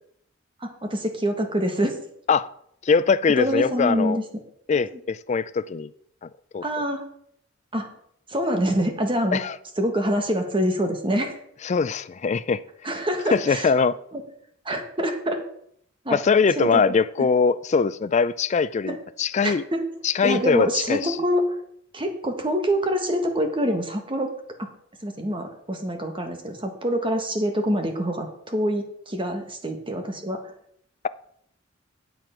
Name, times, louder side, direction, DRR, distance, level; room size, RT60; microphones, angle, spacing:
voice 1, 0.6-2.0 3.4-4.2 6.6-7.0 7.7-7.9 8.3-9.4 9.8-11.4 12.8-13.7 14.1-14.2 14.6-15.4 16.0-16.2 16.6-16.8 17.2-17.3 18.9-19.0 19.4-19.8 20.2-21.5 21.9-24.3 24.6-24.7 25.0-30.5, equal, 25° right, 1.6 m, -25 dB
voice 2, 2.8-4.2 4.7-5.9 6.5-6.6 9.3-9.6 11.6-12.6 13.3-13.9 16.1-19.6 20.0-21.2, left 5 dB, 35° left, 0.4 m, -22 dB
9.1 x 7.7 x 5.9 m
head